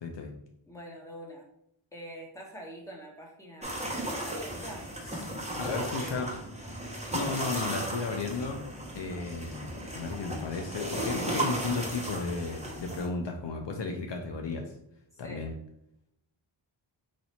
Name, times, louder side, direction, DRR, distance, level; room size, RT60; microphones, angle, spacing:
voice 1, 0.0-0.3 5.2-5.3 5.5-6.3 7.1-8.6 8.9-14.7 15.2-15.5, left 4 dB, 60° left, 2 dB, 0.6 m, -34 dB
voice 2, 0.7-1.5 1.9-4.9 5.6-6.2 15.1-15.4, equal, 5° left, -1 dB, 1.1 m, -45 dB
sound 1, 3.6-13.1, right 1 dB, 15° right, 0.9 m, -35 dB
3.1 x 2.7 x 4.3 m, 0.78 s
cardioid pair, 70°, 50 cm